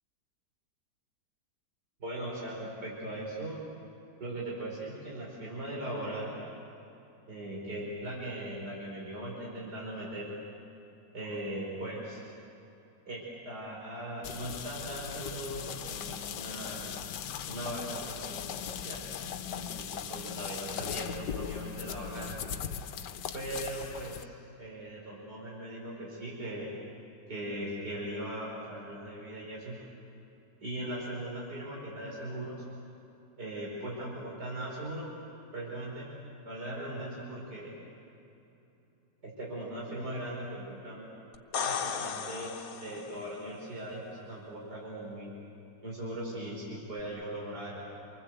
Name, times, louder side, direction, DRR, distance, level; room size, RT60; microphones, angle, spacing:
voice 1, 2.0-3.6 4.2-6.3 7.3-10.3 11.1-12.2 13.1-16.9 17.5-19.1 19.5-22.4 23.3-26.7 27.3-29.8 30.6-32.6 33.4-35.1 35.5-36.1 36.5-37.7 39.2-41.1 41.6-45.3 45.8-47.9, right 1 dB, 70° right, -4 dB, 5.8 m, -39 dB
sound 1, 14.2-24.2, left 8 dB, 75° left, 1.4 m, -39 dB
sound 2, 41.3-43.3 47.0-47.1, left 6 dB, 60° left, 1.4 m, -35 dB
29.0 x 24.0 x 8.0 m, 2.9 s
omnidirectional pair, 1.8 m